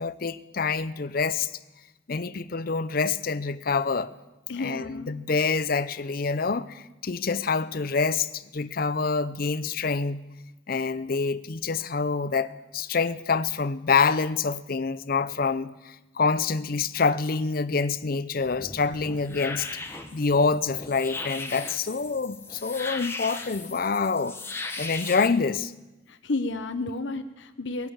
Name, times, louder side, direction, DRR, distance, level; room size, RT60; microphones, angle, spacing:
voice 1, 0.0-1.5 2.1-4.1 4.5-10.2 10.7-19.7 20.1-25.7, left 4 dB, 50° left, 0.6 m, -26 dB
voice 2, 4.5-5.1 26.1-27.9, left 2 dB, 80° left, 0.9 m, -31 dB
sound 1, 18.4-25.3, left 3 dB, 15° left, 1.1 m, -38 dB
18.5 x 8.3 x 8.7 m
head